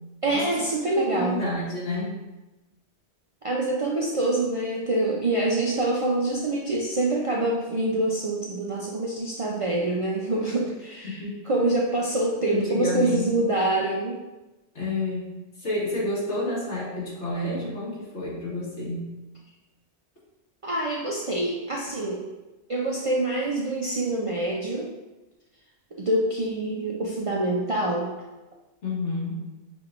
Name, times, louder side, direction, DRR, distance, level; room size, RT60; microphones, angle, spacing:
voice 1, 0.2-1.4 3.4-14.2 20.6-22.3 22.7-24.9 26.0-28.1, right 2 dB, 50° right, -4 dB, 0.4 m, -26 dB
voice 2, 0.9-2.2 11.0-11.3 12.4-13.3 14.8-15.3 15.6-19.0 28.8-29.4, left 2 dB, 80° left, -6 dB, 1.7 m, -29 dB
5.7 x 3.5 x 2.4 m, 1.1 s
omnidirectional pair, 1.2 m